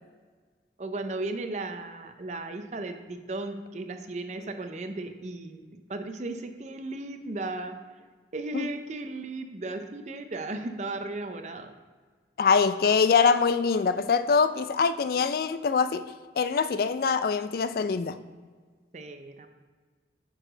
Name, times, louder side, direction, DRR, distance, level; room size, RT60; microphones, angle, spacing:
voice 1, 0.8-7.8 8.3-11.7 18.9-19.5, right 2 dB, 40° right, 7 dB, 0.5 m, -35 dB
voice 2, 12.4-18.2, left 5 dB, 55° left, 12 dB, 0.3 m, -24 dB
5.8 x 4.6 x 5.0 m, 1.5 s
head